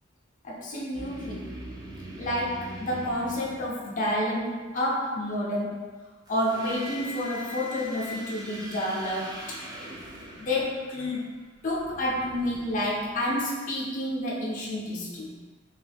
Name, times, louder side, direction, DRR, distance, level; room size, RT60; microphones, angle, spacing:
voice 1, 0.4-1.6 2.2-6.0 6.3-9.6 10.4-11.3 11.6-15.4, left 1 dB, 40° left, -5 dB, 0.5 m, -29 dB
sound 1, 0.9-4.2 6.3-13.6, equal, 20° right, 0.4 m, -42 dB
2.7 x 2.2 x 3.3 m, 1.3 s
head